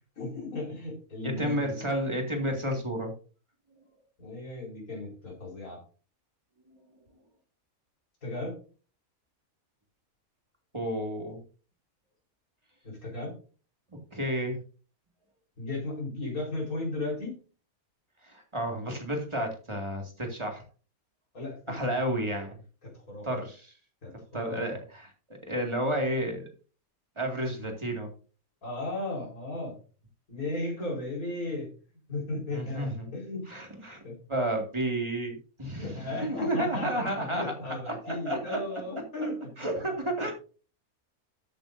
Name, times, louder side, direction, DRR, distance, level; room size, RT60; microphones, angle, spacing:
voice 1, 0.2-1.8 4.2-5.8 8.2-8.6 12.8-13.4 15.6-17.4 21.3-21.8 22.3-22.4 22.8-23.3 24.0-24.6 28.6-29.8 30.3-31.7 32.1-33.5 34.0-34.2 35.7-39.4 40.0-40.3, left 2 dB, 80° left, -3 dB, 4.9 m, -35 dB
voice 2, 1.2-3.1 10.7-11.4 14.1-14.6 18.2-20.6 21.7-22.6 23.2-23.6 24.3-25.1 25.5-26.5 27.2-28.1 32.5-33.1 33.5-34.0 34.3-37.4 37.9-38.8 39.6-40.3, right 1 dB, 20° right, 2 dB, 2.1 m, -31 dB
13.5 x 8.7 x 2.7 m, 0.37 s
omnidirectional pair, 1.5 m